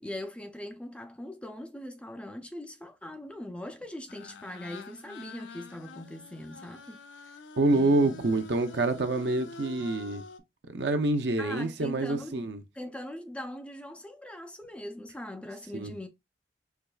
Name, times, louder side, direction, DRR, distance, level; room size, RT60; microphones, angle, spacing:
voice 1, 0.0-7.0 7.7-8.2 11.4-12.5 12.7-16.1, left 1 dB, 5° left, 0.4 m, -41 dB
sound 1, 4.1-10.4, left 3 dB, 90° left, 0.5 m, -47 dB
voice 2, 7.6-10.2 10.7-12.6 15.7-15.9, right 2 dB, 65° right, 0.6 m, -27 dB
4.5 x 3.0 x 2.3 m
head